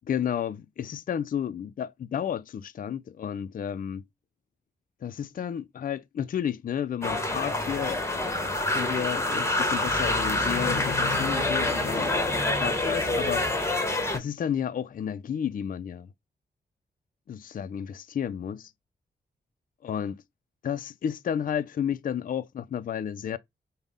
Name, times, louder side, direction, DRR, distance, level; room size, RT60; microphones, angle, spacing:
voice 1, 0.1-4.0 5.0-12.1 12.6-13.4 14.1-16.1 17.3-18.7 19.9-20.1 20.6-23.4, left 8 dB, 50° left, 0.4 m, -32 dB
sound 1, 7.0-14.2, left 2 dB, 15° left, 1.1 m, -26 dB
5.2 x 2.1 x 3.5 m
cardioid pair, 45°, 18 cm